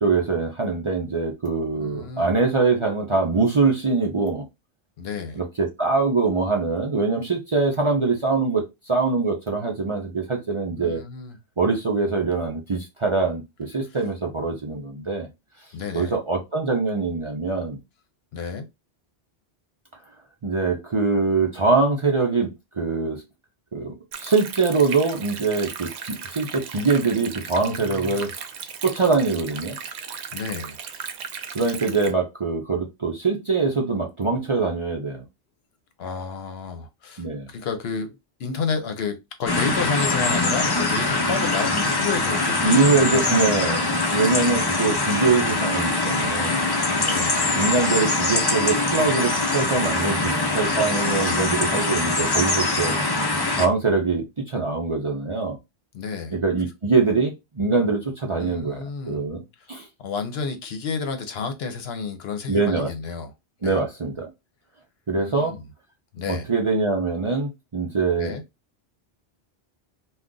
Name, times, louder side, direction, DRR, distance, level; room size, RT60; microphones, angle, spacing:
voice 1, 0.0-4.4 5.3-11.0 11.6-15.3 15.9-17.8 20.4-23.2 23.7-28.3 28.8-29.8 31.5-35.2 37.2-37.5 42.6-43.8 44.1-46.6 47.5-53.0 53.5-55.6 56.3-59.4 59.7-59.9 62.5-62.9 63.6-64.3 65.1-65.6 66.3-68.3, right 4 dB, 40° right, 0.5 m, -23 dB
voice 2, 1.8-2.4 5.0-5.4 10.8-11.4 15.7-16.1 18.3-18.7 27.6-28.3 30.3-30.8 36.0-43.9 47.0-47.3 50.1-50.6 55.9-56.4 58.4-59.2 60.0-63.3 63.6-63.8 65.2-65.6 66.1-66.5 68.2-68.4, left 5 dB, 70° left, 0.9 m, -31 dB
Stream, 24.1-32.1, right 7 dB, 85° right, 0.8 m, -36 dB
sound 1, 39.5-53.7, left 2 dB, 30° left, 0.4 m, -23 dB
2.4 x 2.3 x 3.7 m
omnidirectional pair, 1.1 m